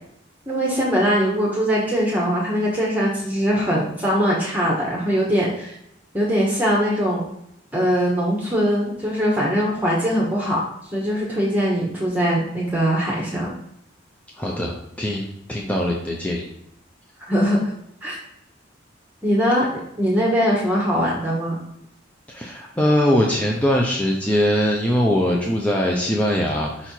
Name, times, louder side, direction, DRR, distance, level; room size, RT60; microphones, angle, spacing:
voice 1, 0.5-5.8 6.1-7.2 7.7-13.5 17.3-17.6 18.0-18.2 19.2-19.7 20.0-21.6, equal, 10° right, -4 dB, 1.0 m, -21 dB
voice 2, 14.4-16.5 22.3-26.9, equal, 5° left, -2 dB, 0.6 m, -21 dB
5.6 x 4.3 x 4.5 m, 0.79 s
head